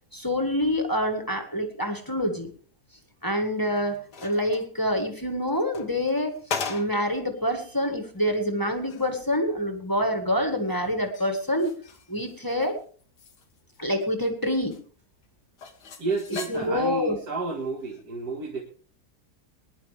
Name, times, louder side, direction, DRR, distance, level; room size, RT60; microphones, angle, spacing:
voice 1, 0.1-2.5 3.2-6.3 6.7-11.7 12.1-12.7 13.8-14.8 16.5-17.2, equal, 15° left, 5 dB, 1.7 m, -26 dB
sound 1, 3.6-4.7 5.5-7.1 7.5-7.6 8.2-8.3 8.7-9.1 10.7-12.7 13.0-14.3 14.7-14.8 15.6-16.9 17.8-18.0, left 5 dB, 90° left, 2.0 m, -39 dB
voice 2, 16.0-18.6, right 3 dB, 70° right, 0 dB, 2.3 m, -31 dB
20.5 x 11.0 x 3.4 m, 0.42 s
omnidirectional pair, 1.7 m